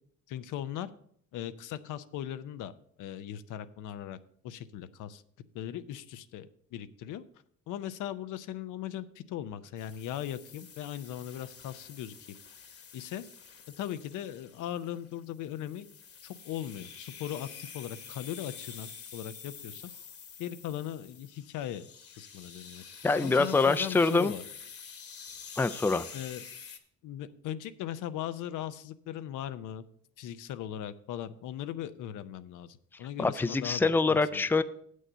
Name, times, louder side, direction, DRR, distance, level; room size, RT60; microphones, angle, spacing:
voice 1, 0.3-0.9 1.3-2.7 3.0-4.2 4.4-5.2 5.5-7.2 7.7-12.2 12.9-13.2 13.8-15.9 16.2-19.9 20.4-21.9 22.2-22.8 23.1-24.4 26.1-26.4 27.0-29.8 30.2-34.4, left 11 dB, 85° left, 12 dB, 0.6 m, -39 dB
sound 1, 9.8-26.8, left 6 dB, 50° left, 1.2 m, -48 dB
voice 2, 23.0-24.3 25.6-26.1 33.2-34.6, left 3 dB, 5° left, 13 dB, 0.4 m, -25 dB
7.9 x 6.4 x 6.8 m, 0.65 s
cardioid pair, 90°, 30 cm